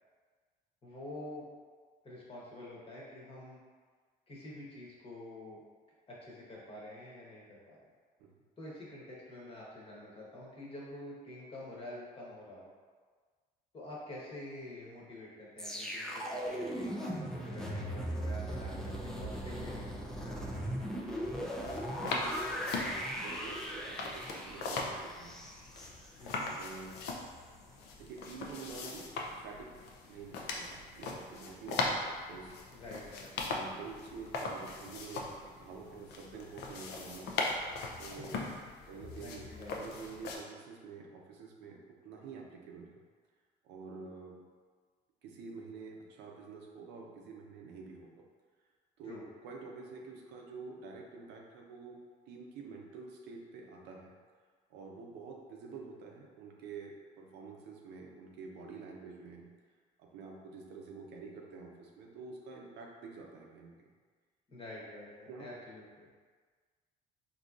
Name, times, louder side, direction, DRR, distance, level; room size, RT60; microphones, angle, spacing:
voice 1, 0.8-1.5 2.0-3.6 4.3-5.6 6.1-7.8 8.6-12.7 13.7-20.0 20.5-20.6 26.2-26.6 32.7-33.5 38.2-38.7 39.2-39.8 49.0-49.2 64.5-66.1, left 1 dB, 35° left, -5 dB, 1.0 m, -47 dB
sound 1, 15.6-26.7 27.0-27.2, equal, 5° left, 0.4 m, -39 dB
sound 2, 21.2-40.4, left 3 dB, 80° left, 0.5 m, -40 dB
voice 2, 21.9-25.4 26.3-27.0 28.0-29.1 29.4-29.7 30.1-32.5 33.4-37.3 38.0-38.3 38.9-43.0 43.6-44.4 45.2-48.2 49.0-49.1 49.4-52.0 52.3-54.1 54.7-59.5 60.0-63.9 65.3-65.5, right 4 dB, 90° right, -1 dB, 0.6 m, -48 dB
3.8 x 2.7 x 2.4 m, 1.5 s
cardioid pair, 110°, 17 cm